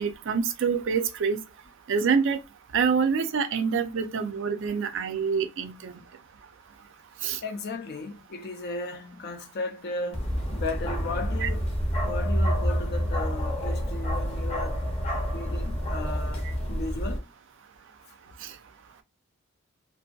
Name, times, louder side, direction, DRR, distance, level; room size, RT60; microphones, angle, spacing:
voice 1, 0.0-1.4 1.9-2.4 2.7-6.0 7.2-7.4 11.4-11.5, right 6 dB, 55° right, 0.4 m, -26 dB
voice 2, 7.4-11.7 12.0-14.8 15.3-17.3, left 2 dB, 45° left, 0.4 m, -35 dB
Bark, 10.1-17.2, equal, 25° left, 0.8 m, -28 dB
2.7 x 2.6 x 2.2 m
head